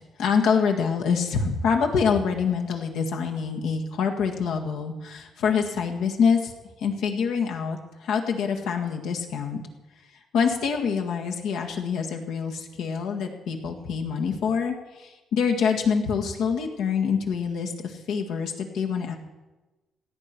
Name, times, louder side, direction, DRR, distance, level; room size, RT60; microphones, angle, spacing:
voice 1, 0.2-6.5 6.8-9.6 10.3-19.2, left 6 dB, 85° left, 3 dB, 1.8 m, -26 dB
16.5 x 8.3 x 6.1 m, 1.1 s
cardioid pair, 90°, 0 cm